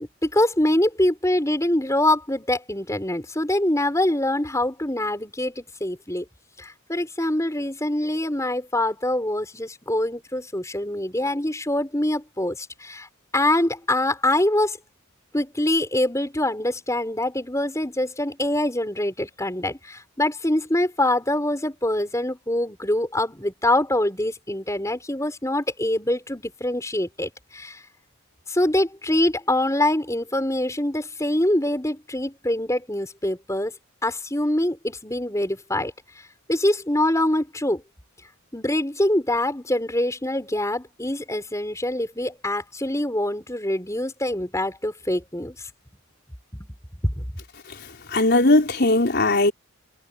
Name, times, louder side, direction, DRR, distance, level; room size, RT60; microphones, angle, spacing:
voice 1, 0.2-6.2 6.6-13.1 13.3-14.8 15.3-27.8 28.5-33.7 34.0-35.9 36.5-37.8 38.5-45.7 46.5-46.7 47.0-47.2, left 1 dB, 15° left, 5.1 m, -24 dB
voice 2, 47.7-49.5, left 2 dB, 50° left, 4.5 m, -19 dB
head